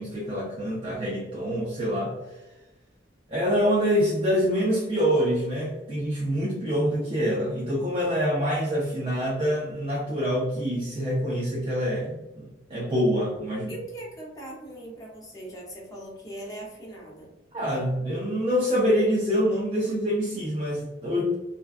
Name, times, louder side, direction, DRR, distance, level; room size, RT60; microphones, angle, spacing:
voice 1, 0.0-2.1 3.3-13.7 17.5-21.3, equal, 30° right, -5 dB, 0.4 m, -26 dB
voice 2, 13.7-17.3, right 1 dB, 20° left, -3 dB, 0.6 m, -40 dB
2.4 x 2.2 x 2.3 m, 1.1 s
head